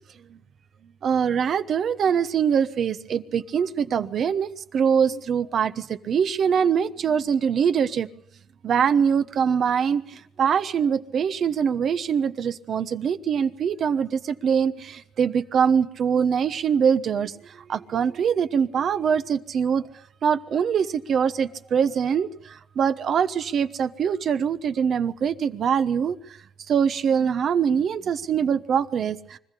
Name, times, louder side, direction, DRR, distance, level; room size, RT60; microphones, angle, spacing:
voice 1, 1.0-8.1 8.6-19.8 20.2-26.4 26.7-29.4, right 7 dB, 60° right, 1.1 m, -23 dB
25.0 x 15.0 x 8.5 m
cardioid pair, 90°, 0 cm